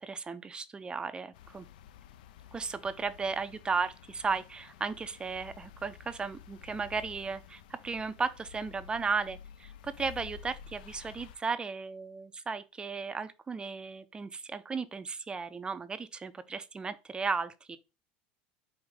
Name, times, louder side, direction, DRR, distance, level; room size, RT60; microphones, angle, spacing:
voice 1, 0.0-1.7 2.5-17.8, right 5 dB, 20° right, 0.4 m, -35 dB
sound 1, 1.3-11.4, left 9 dB, 85° left, 0.4 m, -51 dB
4.8 x 2.5 x 3.6 m
supercardioid pair, 105°, 5 cm